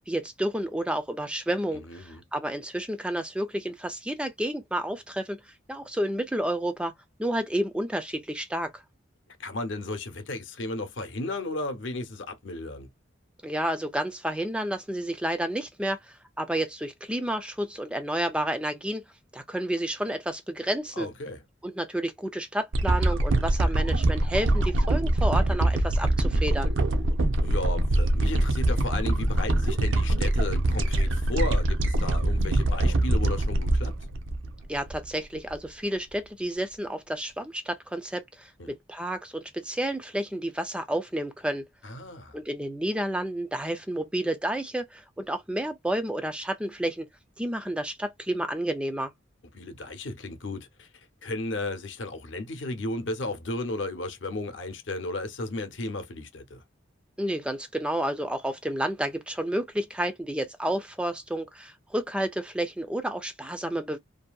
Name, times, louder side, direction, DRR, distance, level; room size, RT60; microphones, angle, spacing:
voice 1, 0.0-6.9 7.2-8.8 13.4-19.0 19.3-21.1 21.6-26.7 34.7-41.6 42.3-47.1 47.4-49.1 57.2-64.0, right 1 dB, 5° right, 0.3 m, -30 dB
voice 2, 1.9-2.2 9.4-12.9 21.0-21.4 27.4-34.0 38.6-38.7 41.8-42.4 49.5-50.9 51.2-56.6, left 2 dB, 70° left, 0.7 m, -34 dB
sound 1, 22.7-35.1 35.5-35.6, right 1 dB, 80° right, 0.6 m, -24 dB
2.7 x 2.5 x 2.2 m
head